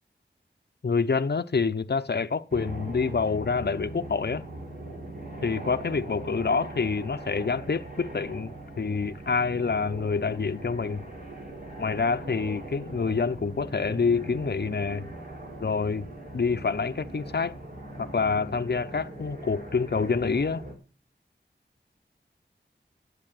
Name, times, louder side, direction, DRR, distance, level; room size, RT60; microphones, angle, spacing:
voice 1, 0.8-4.4 5.4-11.0 11.8-15.1 15.6-16.1 16.3-17.5 18.0-20.6, left 5 dB, 65° left, 0.7 m, -27 dB
sound 1, 2.5-20.7, right 1 dB, 55° right, 3.8 m, -41 dB
10.0 x 8.2 x 9.0 m
wide cardioid pair, 55°, 19 cm